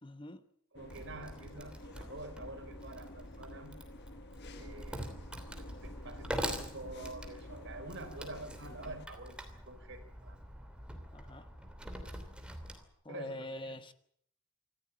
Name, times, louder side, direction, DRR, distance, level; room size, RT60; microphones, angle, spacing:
voice 1, 0.0-0.4 11.1-11.5 13.0-13.9, left 1 dB, 25° left, 1.0 m, -44 dB
sound 1, 0.7-9.1, left 1 dB, 50° left, 1.4 m, -51 dB
voice 2, 0.7-3.8 4.5-5.1 5.6-9.4 9.7-10.4 13.1-13.8, right 2 dB, 55° right, 4.3 m, -47 dB
Wood, 0.9-12.8, equal, 5° right, 3.0 m, -44 dB
26.5 x 15.0 x 9.0 m
head